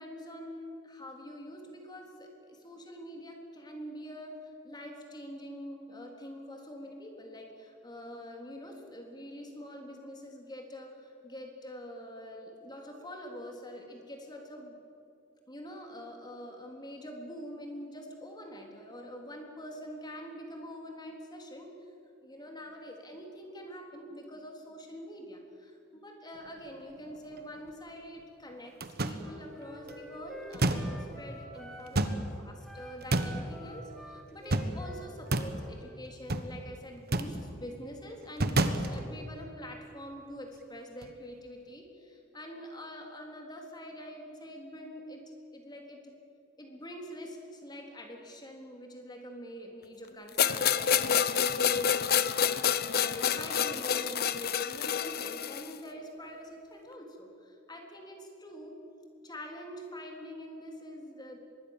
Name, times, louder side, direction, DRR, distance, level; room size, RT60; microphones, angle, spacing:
voice 1, 0.0-4.4 4.6-14.8 15.5-21.7 22.2-28.8 29.0-45.2 45.5-46.1 46.6-58.8 59.2-61.4, equal, 20° left, 2 dB, 3.7 m, -45 dB
sound 1, 26.3-27.7 28.5-28.6 28.8-29.6 29.9-31.2 31.8-32.7 33.0-33.6 34.3-34.9 35.2-35.7 36.1-36.5 37.0-37.5 38.2-39.3 40.5-40.6 41.0-41.2, right 2 dB, 50° right, 1.4 m, -31 dB
Wind instrument woodwind instrument, 29.2-32.2 32.6-36.0, right 1 dB, ahead, 2.8 m, -49 dB
sound 2, 50.4-55.7, left 8 dB, 50° left, 0.8 m, -28 dB
24.5 x 21.5 x 7.4 m, 2.5 s
head